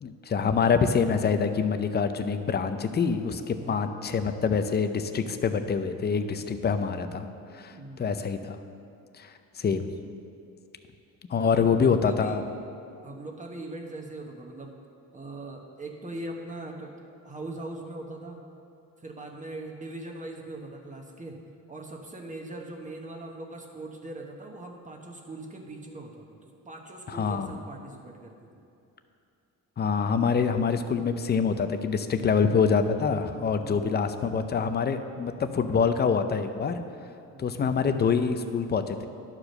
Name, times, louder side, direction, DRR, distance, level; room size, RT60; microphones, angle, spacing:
voice 1, 0.0-7.3 7.5-8.6 9.1-9.9 11.3-12.4 27.1-27.5 29.8-36.8 37.4-39.1, left 6 dB, 30° left, 9 dB, 0.5 m, -26 dB
voice 2, 3.5-3.9 7.7-8.1 11.4-12.4 13.0-14.7 15.1-16.9 17.2-18.4 19.0-21.4 21.7-28.6 33.6-33.9 37.3-37.6, right 2 dB, 20° right, 1 dB, 1.1 m, -41 dB
11.0 x 4.9 x 6.5 m, 2.6 s
cardioid pair, 110°, 35 cm